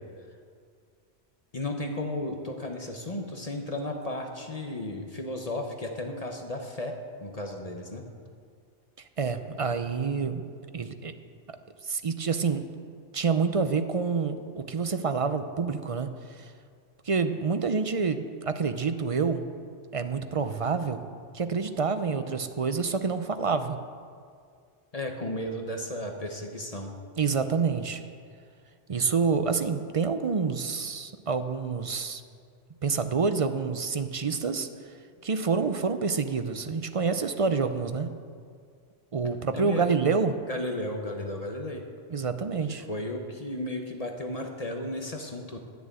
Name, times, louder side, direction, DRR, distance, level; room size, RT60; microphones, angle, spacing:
voice 1, 1.5-8.0 24.9-26.9 39.5-39.9 40.5-41.8 42.9-45.6, left 1 dB, 35° left, 3 dB, 1.0 m, -34 dB
voice 2, 9.2-10.5 10.7-11.1 11.8-12.7 13.1-16.5 17.0-19.4 19.9-21.1 21.3-23.8 27.2-28.0 28.9-32.2 32.8-34.7 35.2-38.1 39.1-40.4 42.1-42.8, right 5 dB, 45° right, 9 dB, 0.4 m, -27 dB
10.5 x 7.0 x 8.8 m, 2.2 s
omnidirectional pair, 1.2 m